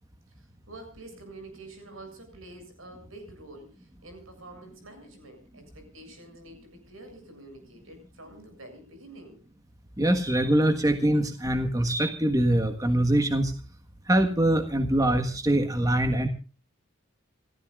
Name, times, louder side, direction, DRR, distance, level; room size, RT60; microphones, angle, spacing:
voice 1, 0.4-9.4, right 2 dB, 80° right, 7 dB, 7.5 m, -47 dB
voice 2, 10.0-13.5 14.1-16.3, right 1 dB, 15° right, 7 dB, 1.5 m, -23 dB
29.0 x 14.5 x 2.5 m, 0.34 s
head